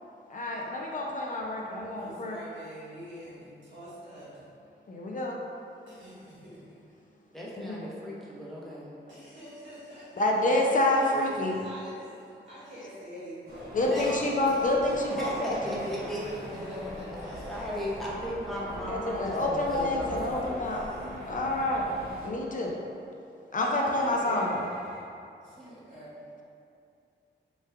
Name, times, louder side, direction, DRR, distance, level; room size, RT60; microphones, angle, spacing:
voice 1, 0.3-2.4 4.9-5.4 7.6-7.8 10.2-11.7 13.7-15.6 18.9-20.8 21.3-21.9 22.2-22.7 23.5-24.7, left 1 dB, 45° left, -1 dB, 0.5 m, -28 dB
voice 2, 2.0-4.4 5.9-6.7 9.1-10.5 10.9-13.7 16.7-17.6 20.3-21.2 23.8-25.0 25.4-26.1, equal, 80° right, -10 dB, 1.3 m, -46 dB
voice 3, 7.3-9.0 13.8-14.2 15.1-16.8 17.1-20.6 25.6-25.8, equal, ahead, -7 dB, 0.7 m, -37 dB
sound 1, 13.5-22.3, equal, 55° right, 1.1 m, -41 dB
3.1 x 2.3 x 3.3 m, 2.6 s
cardioid pair, 60°, 20 cm